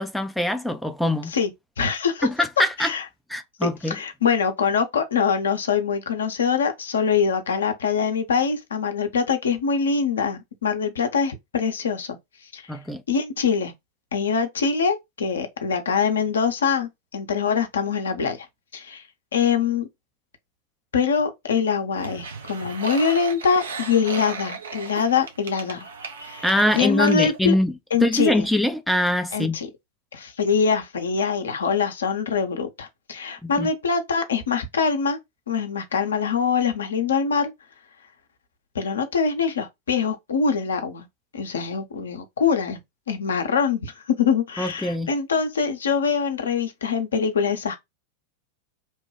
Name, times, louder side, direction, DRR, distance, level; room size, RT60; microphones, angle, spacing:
voice 1, 0.0-1.3 2.2-2.9 3.3-4.0 12.7-13.0 26.4-27.7 28.0-29.6 33.4-33.7 44.6-45.1, left 1 dB, ahead, 0.4 m, -23 dB
voice 2, 1.8-2.3 2.8-3.0 3.6-12.2 12.5-12.8 13.1-13.7 14.1-18.5 18.7-19.0 19.3-19.9 20.9-25.9 26.2-26.5 26.7-27.5 27.9-28.5 29.3-29.7 30.1-35.2 35.5-37.5 38.7-41.1 41.3-42.8 43.1-47.8, left 6 dB, 65° left, 0.7 m, -24 dB
sound 1, 22.0-27.4, right 4 dB, 65° right, 0.6 m, -36 dB
3.0 x 2.2 x 3.1 m
figure-of-eight pair, 90°, 0 cm